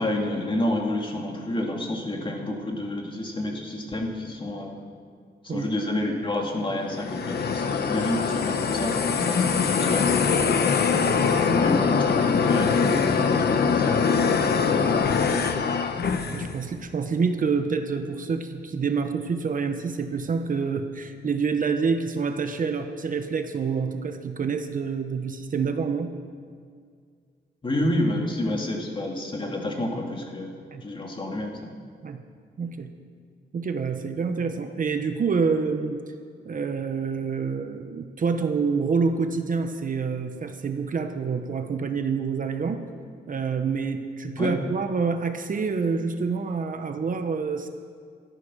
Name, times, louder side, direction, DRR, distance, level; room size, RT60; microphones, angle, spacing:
voice 1, 0.0-4.7 5.4-10.5 11.6-15.6 27.6-30.5 30.8-31.6 44.4-44.5, left 1 dB, 25° left, 1 dB, 2.4 m, -29 dB
sound 1, 6.8-16.6, left 5 dB, 60° left, 1.1 m, -23 dB
voice 2, 16.3-26.1 30.7-30.8 32.0-32.2 32.6-32.9 33.5-36.0 36.4-42.8 43.3-47.7, right 5 dB, 45° right, 7 dB, 1.1 m, -27 dB
16.5 x 13.5 x 6.2 m, 2.1 s
wide cardioid pair, 150°, 18 cm